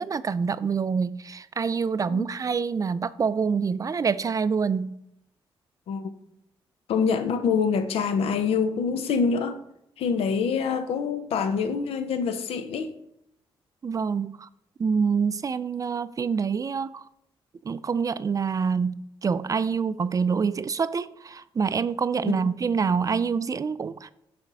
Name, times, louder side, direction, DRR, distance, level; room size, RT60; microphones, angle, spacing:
voice 1, 0.0-5.0 13.8-14.5 14.8-17.0 17.6-24.1, right 5 dB, 35° right, 0.3 m, -26 dB
voice 2, 6.9-9.6 10.0-13.0 22.2-22.5, left 6 dB, 85° left, 0.6 m, -26 dB
6.5 x 4.3 x 4.7 m
cardioid pair, 65°, 10 cm